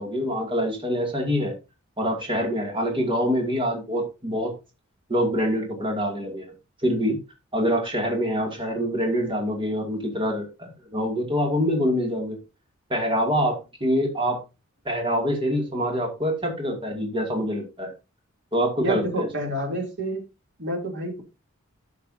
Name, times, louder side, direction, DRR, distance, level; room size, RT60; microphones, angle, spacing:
voice 1, 0.0-1.5 2.0-4.5 5.1-6.5 6.8-7.2 7.5-12.4 12.9-14.4 14.8-17.9 18.5-19.2, equal, 25° right, 1 dB, 2.5 m, -25 dB
voice 2, 18.8-20.2 20.6-21.2, right 1 dB, 55° right, 2 dB, 3.1 m, -28 dB
12.5 x 6.6 x 2.8 m, 0.28 s
head